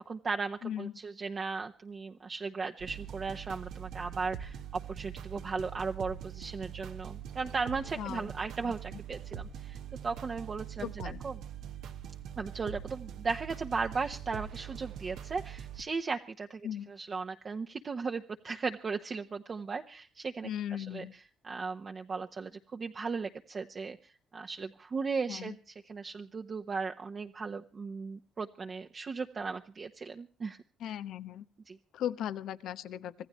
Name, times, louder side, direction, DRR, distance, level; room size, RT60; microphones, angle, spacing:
voice 1, 0.1-10.9 11.2-11.3 12.4-21.1 21.4-25.6 25.8-30.6 31.7-31.8, right 4 dB, 40° right, 4 dB, 1.0 m, -37 dB
voice 2, 0.6-0.9 8.0-8.3 8.6-8.7 10.8-11.2 16.6-16.9 20.4-21.1 25.3-25.6 30.8-31.4 31.9-33.3, left 10 dB, 80° left, 13 dB, 0.9 m, -37 dB
sound 1, 2.8-15.8, right 9 dB, 85° right, 1.3 m, -43 dB
25.5 x 15.0 x 3.1 m, 0.37 s
cardioid pair, 90°, 0 cm